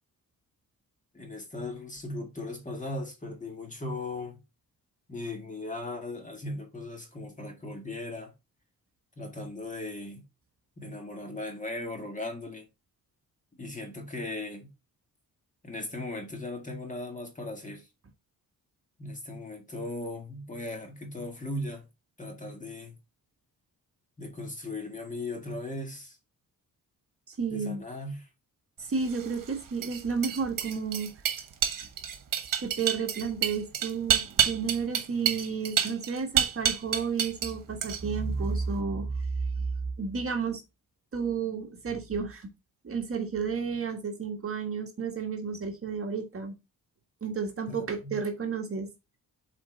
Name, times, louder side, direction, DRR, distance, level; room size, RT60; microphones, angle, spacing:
voice 1, 1.1-4.4 5.1-8.3 9.2-10.2 10.8-12.7 13.6-14.7 15.6-17.9 19.0-21.8 22.2-22.9 24.2-26.2 27.5-28.3 47.7-48.2, left 2 dB, 20° left, 1.9 m, -38 dB
voice 2, 27.3-27.8 28.8-31.1 32.6-39.7 40.0-40.6 41.1-42.5 42.8-46.6 47.2-48.9, right 5 dB, 40° right, 1.5 m, -32 dB
sound 1, 29.0-37.5 37.8-38.3, right 9 dB, 65° right, 1.3 m, -29 dB
7.4 x 4.3 x 4.0 m
wide cardioid pair, 135°, 35 cm